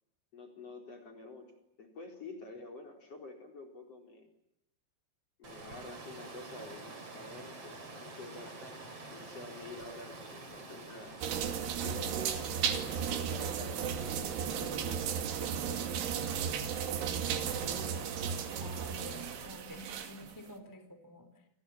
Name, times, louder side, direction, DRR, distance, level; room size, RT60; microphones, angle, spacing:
voice 1, 0.3-4.3 5.4-8.8 9.1-14.0 14.2-16.0, left 3 dB, 35° left, 4 dB, 5.0 m, -49 dB
Water, 5.4-19.5, right 3 dB, 30° right, 5.5 m, -48 dB
sound 1, 11.2-20.3, right 8 dB, 80° right, 4.9 m, -35 dB
voice 2, 18.6-21.5, left 1 dB, 5° left, 9 dB, 3.3 m, -50 dB
29.5 x 25.5 x 7.4 m, 0.86 s
omnidirectional pair, 5.4 m